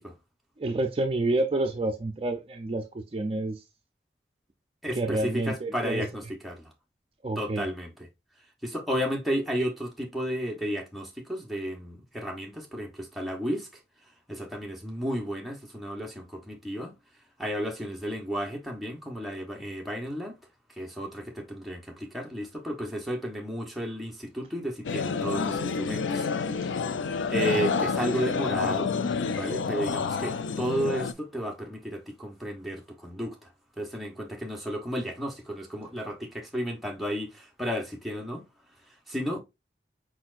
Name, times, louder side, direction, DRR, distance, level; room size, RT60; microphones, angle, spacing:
voice 1, 0.6-3.6 4.9-6.1 7.2-7.7, right 2 dB, 30° right, 0.4 m, -29 dB
voice 2, 4.8-6.7 7.4-7.9 8.6-13.7 14.3-16.9 17.4-20.4 20.8-26.3 27.3-28.9 29.3-38.4 38.9-39.4, equal, ahead, 0.8 m, -33 dB
sound 1, 24.8-31.1, left 5 dB, 85° left, 0.4 m, -28 dB
4.6 x 4.2 x 2.4 m
head